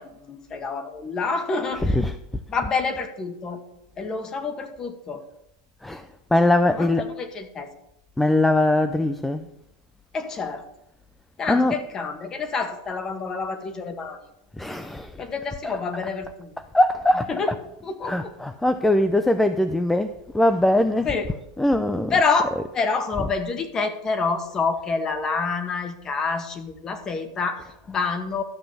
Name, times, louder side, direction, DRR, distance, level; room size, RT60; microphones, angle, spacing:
voice 1, 0.0-2.0 2.5-3.6 4.0-5.2 6.7-7.7 10.1-10.7 11.4-14.2 15.2-16.5 17.3-17.5 17.8-18.3 21.1-21.3 22.1-28.4, left 4 dB, 25° left, 1.8 m, -27 dB
voice 2, 1.7-2.2 5.8-6.0 6.3-7.1 8.2-9.4 11.5-11.8 14.6-15.1 15.6-15.8 16.7-17.3 18.0-21.2 21.6-22.2 22.5-22.7 23.2-23.3, left 1 dB, 5° left, 0.6 m, -21 dB
12.5 x 6.1 x 8.5 m
supercardioid pair, 125°, 2 cm